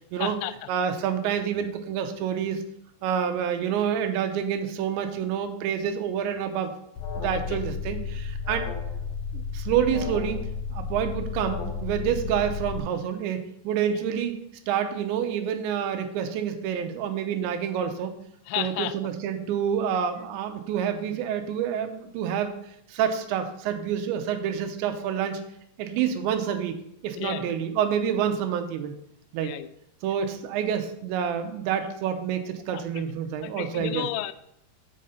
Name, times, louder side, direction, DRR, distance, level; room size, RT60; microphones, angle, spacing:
voice 1, 0.2-0.5 7.3-7.6 18.5-19.0 27.2-27.5 29.4-29.7 31.8-31.9 32.7-32.8 33.4-34.3, left 14 dB, 90° left, 13 dB, 2.9 m, -32 dB
voice 2, 0.7-2.6 3.0-6.7 7.2-8.7 9.3-10.5 10.7-14.3 14.7-18.1 18.6-22.6 22.9-25.4 25.8-26.8 27.0-28.9 29.3-29.5 30.0-34.1, right 8 dB, 85° right, 7 dB, 3.0 m, -28 dB
Alarm, 7.0-12.8, left 5 dB, 60° left, 1.8 m, -32 dB
7.6 x 5.5 x 5.1 m, 0.77 s
omnidirectional pair, 5.1 m